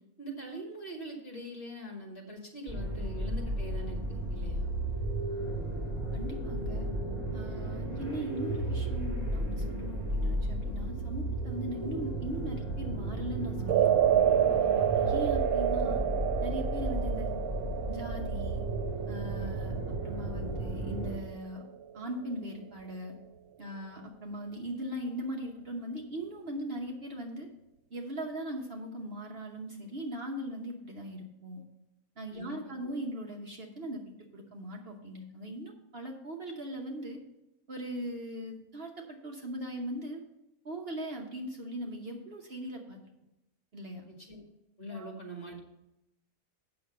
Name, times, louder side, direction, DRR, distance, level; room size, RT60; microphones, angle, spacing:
voice 1, 0.2-4.7 14.6-14.9 32.3-33.0 44.1-44.4 44.8-45.6, right 1 dB, 45° left, 0 dB, 2.3 m, -43 dB
sound 1, 2.7-21.2, right 1 dB, 15° right, 2.3 m, -34 dB
voice 2, 6.1-6.9 7.3-13.9 14.8-16.0 16.4-17.3 17.9-18.6 19.1-19.8 20.0-21.6 21.9-23.2 23.6-27.5 27.9-31.6 32.2-37.2 37.7-40.2 40.6-43.0 43.7-44.1 44.9-45.1, right 1 dB, 45° right, 1 dB, 1.2 m, -39 dB
sound 2, 13.7-22.0, right 9 dB, 90° right, 1.2 m, -29 dB
8.4 x 6.4 x 5.6 m, 0.88 s
omnidirectional pair, 1.5 m